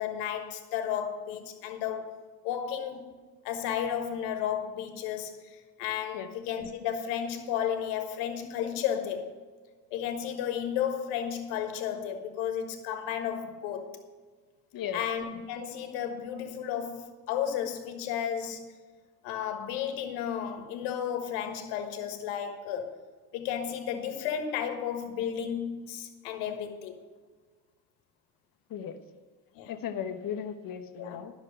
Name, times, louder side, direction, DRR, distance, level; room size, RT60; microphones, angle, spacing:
voice 1, 0.0-2.2 2.4-3.1 3.4-9.3 9.9-14.0 14.9-18.8 19.2-23.0 23.3-27.0 29.5-29.8 31.0-31.2, left 9 dB, 75° left, 1.4 m, -33 dB
voice 2, 29.7-31.3, left 8 dB, 50° left, 1.1 m, -36 dB
10.5 x 6.2 x 6.5 m
hypercardioid pair, 75°, 44 cm